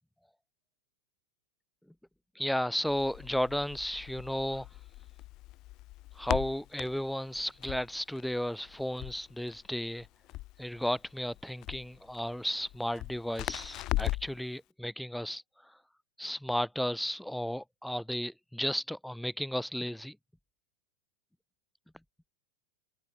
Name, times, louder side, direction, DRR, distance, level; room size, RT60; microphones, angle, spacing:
voice 1, 2.4-4.7 6.2-10.1 10.6-15.4 16.2-20.2, equal, ahead, 0.7 m, -34 dB
Crackle, 2.9-14.4, left 18 dB, 40° left, 1.2 m, -40 dB
figure-of-eight pair, 90°, 0 cm